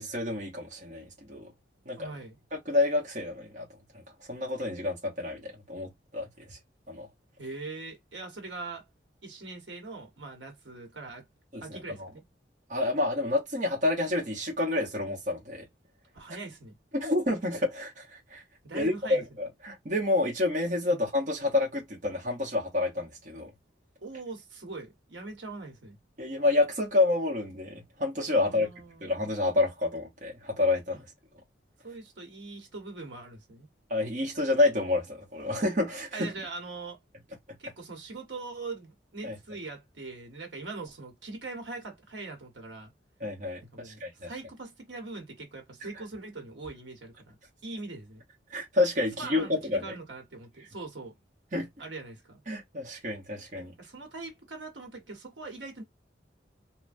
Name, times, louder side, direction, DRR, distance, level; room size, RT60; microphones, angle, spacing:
voice 1, 0.0-1.5 1.8-2.1 2.5-3.7 3.9-4.0 4.3-6.6 6.9-7.1 11.5-12.1 12.7-15.7 16.9-18.4 18.7-23.5 26.2-28.7 29.0-31.1 33.9-36.3 39.2-39.4 43.2-44.3 48.5-49.8 51.5-51.7 52.5-53.7, left 2 dB, 45° right, 0.9 m, -29 dB
voice 2, 2.0-2.4 7.4-8.9 9.2-11.3 11.6-12.2 16.1-16.8 18.6-19.2 20.9-21.0 24.0-26.0 28.4-29.1 30.9-31.0 31.8-33.7 36.1-37.0 37.6-42.9 43.7-48.2 49.2-51.2 51.8-52.4 53.8-55.8, right 3 dB, 85° right, 1.1 m, -42 dB
3.2 x 2.1 x 2.5 m
head